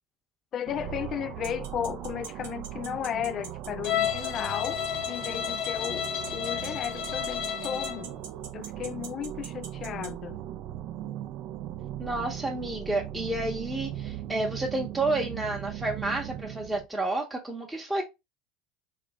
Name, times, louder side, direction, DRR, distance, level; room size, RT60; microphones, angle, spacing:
voice 1, 0.5-4.8 5.1-8.1 8.5-10.4, left 9 dB, 45° left, 0.3 m, -34 dB
sound 1, 0.7-16.9, right 12 dB, 60° right, 0.3 m, -39 dB
sound 2, 1.4-10.1, right 6 dB, 80° right, 0.8 m, -42 dB
Bowed string instrument, 3.8-8.1, left 10 dB, 60° left, 0.8 m, -31 dB
voice 2, 12.0-18.0, right 2 dB, 10° right, 0.7 m, -30 dB
3.2 x 2.7 x 3.2 m
hypercardioid pair, 85°, 0 cm